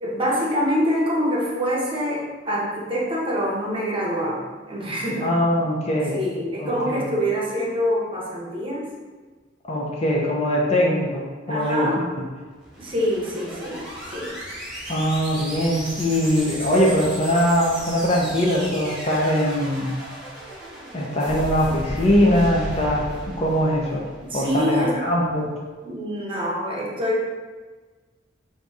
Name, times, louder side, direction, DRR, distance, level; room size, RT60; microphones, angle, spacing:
voice 1, 0.0-5.3 6.1-8.9 11.5-12.1 12.8-14.4 24.2-25.0 25.8-27.2, equal, 30° right, -4 dB, 1.0 m, -25 dB
voice 2, 5.2-6.2 6.6-7.0 9.7-12.0 14.9-19.9 20.9-23.0 23.4-24.0 24.3-25.5, equal, 35° left, -3 dB, 0.7 m, -21 dB
sound 1, 12.5-24.9, equal, 5° right, 1.1 m, -35 dB
3.9 x 2.7 x 4.7 m, 1.4 s
head